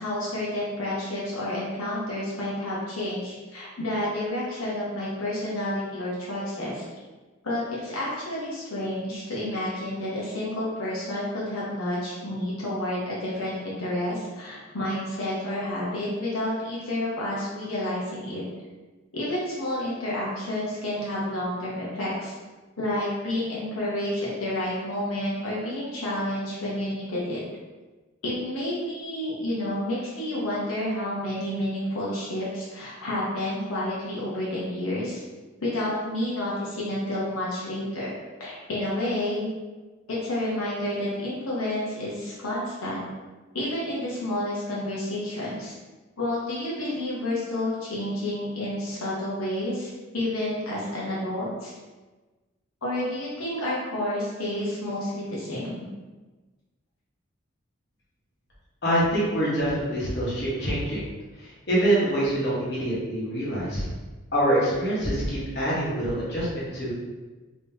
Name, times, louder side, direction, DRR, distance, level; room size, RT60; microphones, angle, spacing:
voice 1, 0.0-6.8 7.4-18.4 19.1-22.3 22.8-27.4 28.2-35.2 35.6-38.1 38.4-39.5 40.1-43.0 43.5-45.7 46.2-51.7 52.8-55.9, left 1 dB, 90° left, -7 dB, 0.9 m, -30 dB
voice 2, 58.8-61.0 61.4-63.9 64.3-66.9, right 1 dB, 50° left, -8 dB, 1.2 m, -25 dB
3.6 x 3.0 x 2.7 m, 1.2 s
head